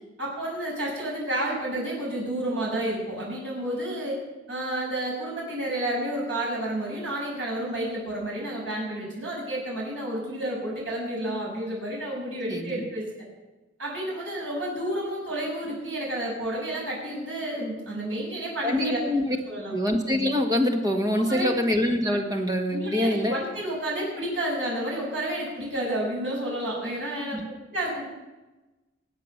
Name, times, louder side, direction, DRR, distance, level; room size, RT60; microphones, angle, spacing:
voice 1, 0.2-4.2 4.5-13.0 13.8-19.0 19.5-19.7 21.2-21.6 22.7-27.4 27.7-28.0, right 1 dB, 75° right, -3 dB, 5.9 m, -30 dB
voice 2, 12.5-12.8 18.6-19.4 19.7-23.4 27.3-27.4, left 1 dB, 20° right, 3 dB, 1.6 m, -25 dB
20.0 x 8.2 x 6.6 m, 1.1 s
head